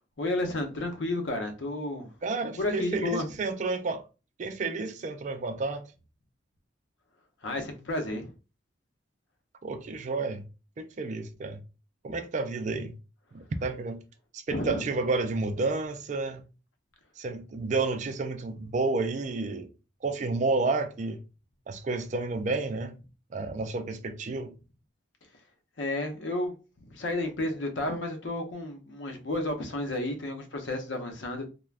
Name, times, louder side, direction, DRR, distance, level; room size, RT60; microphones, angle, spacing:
voice 1, 0.2-2.1 2.6-3.3 7.4-8.3 14.5-14.8 25.8-26.5 26.9-31.5, left 2 dB, 85° left, 0.7 m, -31 dB
voice 2, 2.2-4.1 4.4-5.8 9.6-10.4 10.8-11.6 12.0-13.0 13.3-14.0 14.3-16.4 17.2-19.7 20.0-21.2 21.7-23.0 23.3-24.5, right 3 dB, 40° right, 0.4 m, -31 dB
3.2 x 2.2 x 2.4 m
head